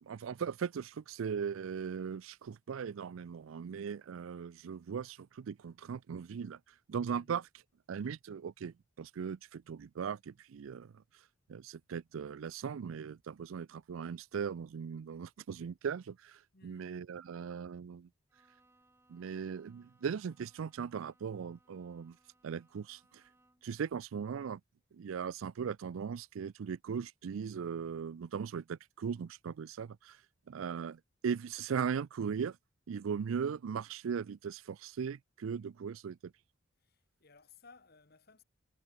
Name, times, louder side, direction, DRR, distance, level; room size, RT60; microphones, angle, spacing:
voice 1, 0.0-6.6 6.9-7.4 7.9-10.9 11.5-18.1 19.1-22.2 22.4-23.2 23.6-24.6 24.9-30.2 30.5-32.6 32.9-36.3, right 6 dB, 80° right, 0.4 m, -38 dB
voice 2, 16.5-17.0 36.8-38.4, left 4 dB, 50° left, 1.7 m, -61 dB
Bowed string instrument, 18.3-23.8, right 2 dB, 10° right, 6.3 m, -70 dB
head